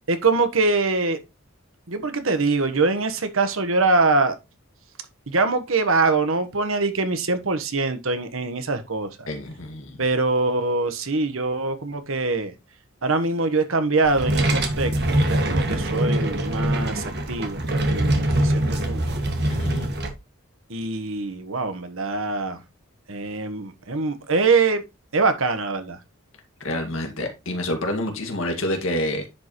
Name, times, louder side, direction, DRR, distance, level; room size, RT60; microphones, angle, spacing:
voice 1, 0.1-1.2 1.9-4.4 5.3-9.3 10.0-12.5 13.0-14.9 15.2-19.0 20.7-22.6 23.1-24.8 25.1-26.0, right 3 dB, 65° right, 1.3 m, -23 dB
voice 2, 9.3-10.0 19.5-19.9 26.6-29.3, left 1 dB, 65° left, 2.1 m, -28 dB
sound 1, 14.0-20.1, right 1 dB, 50° right, 1.7 m, -23 dB
10.0 x 5.4 x 3.1 m
head